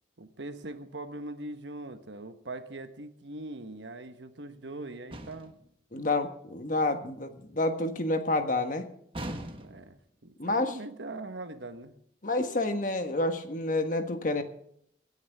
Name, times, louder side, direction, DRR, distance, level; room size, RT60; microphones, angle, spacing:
voice 1, 0.2-5.5 9.6-10.0 10.2-11.9, right 2 dB, 85° right, 8 dB, 1.2 m, -41 dB
sound 1, 5.1-5.7 9.1-10.0, right 1 dB, 30° right, 1.3 m, -39 dB
voice 2, 5.9-8.9 10.4-10.8 12.2-14.4, left 2 dB, 45° left, 7 dB, 1.4 m, -29 dB
25.0 x 9.4 x 3.5 m, 0.68 s
head